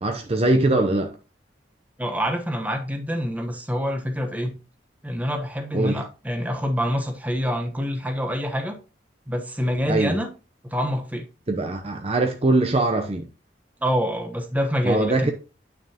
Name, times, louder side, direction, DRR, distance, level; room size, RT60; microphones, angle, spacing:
voice 1, 0.0-1.1 5.7-6.0 9.9-10.2 11.5-13.3 14.8-15.3, right 2 dB, 35° right, 0.6 m, -22 dB
voice 2, 2.0-4.6 5.0-8.8 9.3-10.3 10.6-11.3 13.8-15.3, equal, 10° right, 1.0 m, -26 dB
9.1 x 6.0 x 2.8 m
head